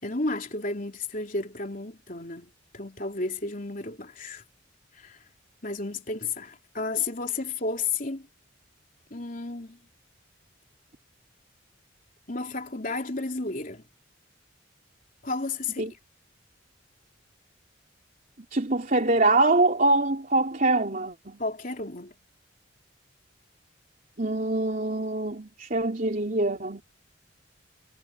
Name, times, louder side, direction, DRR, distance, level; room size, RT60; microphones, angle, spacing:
voice 1, 0.0-4.4 4.9-5.2 5.6-8.3 9.1-9.8 12.3-13.8 15.2-16.0 21.4-22.1, left 3 dB, 45° left, 3.6 m, -32 dB
voice 2, 18.5-21.4 24.2-26.8, right 2 dB, 45° right, 3.4 m, -24 dB
head